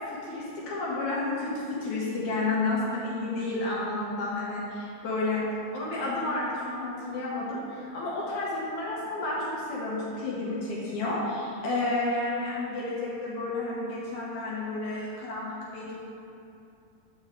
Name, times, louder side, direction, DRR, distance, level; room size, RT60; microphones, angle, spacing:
voice 1, 0.0-5.4 5.7-16.0, left 2 dB, 70° left, -6 dB, 2.2 m, -31 dB
7.8 x 5.8 x 3.5 m, 2.7 s
omnidirectional pair, 4.0 m